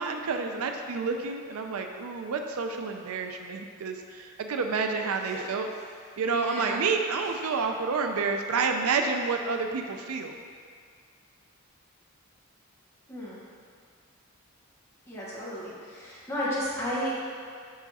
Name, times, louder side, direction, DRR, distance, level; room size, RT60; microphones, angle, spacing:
voice 1, 0.0-5.7 6.2-10.4, right 4 dB, 80° right, 4 dB, 0.4 m, -29 dB
voice 2, 6.3-6.8 7.4-7.6 13.1-13.4 15.1-17.2, equal, 10° left, -8 dB, 1.3 m, -33 dB
5.7 x 4.7 x 4.1 m, 2.1 s
head